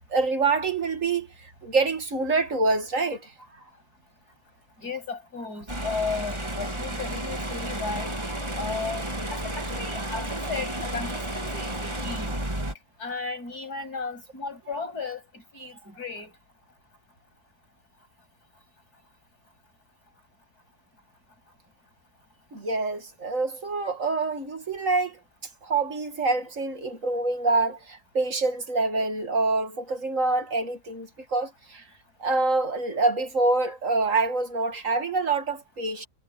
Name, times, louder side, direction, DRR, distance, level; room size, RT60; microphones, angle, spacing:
voice 1, 0.1-1.3 1.6-3.2 22.5-25.1 25.6-31.8 32.2-36.0, right 3 dB, 55° right, 2.6 m, -26 dB
voice 2, 4.8-8.1 8.5-12.3 13.0-16.3, left 4 dB, 85° left, 8.8 m, -35 dB
sound 1, 5.7-12.7, right 1 dB, 20° right, 2.6 m, -32 dB
omnidirectional pair, 1.6 m